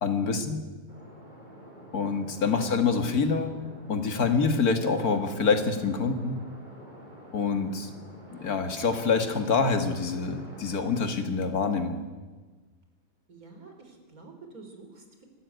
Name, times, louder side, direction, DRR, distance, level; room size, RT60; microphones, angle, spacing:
voice 1, 0.0-0.6 1.9-3.5 3.9-6.4 7.3-7.9 8.3-12.0, left 4 dB, 85° left, 7 dB, 2.4 m, -26 dB
sound 1, 0.9-11.5, equal, 30° right, 4.8 m, -48 dB
voice 2, 13.3-15.2, right 3 dB, 75° right, 4 dB, 4.1 m, -48 dB
25.0 x 13.5 x 9.4 m, 1.4 s
omnidirectional pair, 1.6 m